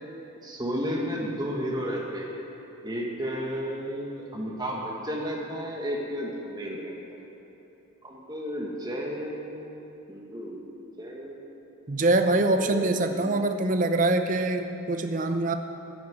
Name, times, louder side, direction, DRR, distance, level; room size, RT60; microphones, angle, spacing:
voice 1, 0.4-2.4 2.8-7.0 8.0-9.7 10.1-10.6 11.0-11.4 12.6-13.2, equal, 20° right, -1 dB, 1.5 m, -33 dB
voice 2, 11.9-15.5, right 2 dB, 35° right, 7 dB, 0.7 m, -24 dB
10.0 x 9.8 x 8.0 m, 2.9 s
head